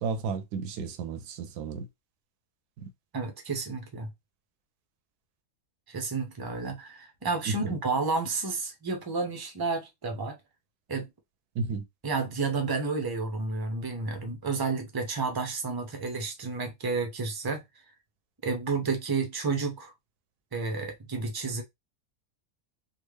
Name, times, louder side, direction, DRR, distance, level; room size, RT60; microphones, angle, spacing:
voice 1, 0.0-1.9 2.8-2.9 7.6-7.7 11.6-11.8, right 5 dB, 80° right, 1.1 m, -33 dB
voice 2, 3.1-4.1 5.9-10.4 10.9-11.1 12.0-17.6 18.4-19.9 20.5-21.6, right 4 dB, 25° right, 0.5 m, -31 dB
3.5 x 2.4 x 3.2 m
omnidirectional pair, 1.6 m